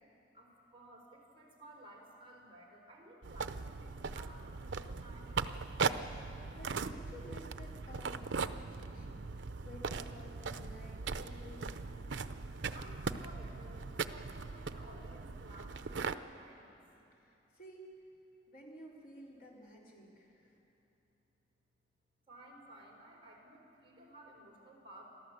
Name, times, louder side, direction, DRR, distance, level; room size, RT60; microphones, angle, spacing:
voice 1, 0.3-5.5 12.7-13.8 14.1-16.7 22.3-25.1, right 1 dB, 30° right, -2 dB, 4.4 m, -55 dB
sound 1, 3.2-16.1, right 4 dB, 80° right, 0.6 m, -39 dB
voice 2, 6.5-9.3 9.6-11.9 17.1-17.9 18.5-20.6, equal, 55° left, -3 dB, 4.0 m, -54 dB
28.0 x 13.0 x 8.0 m, 2.9 s
head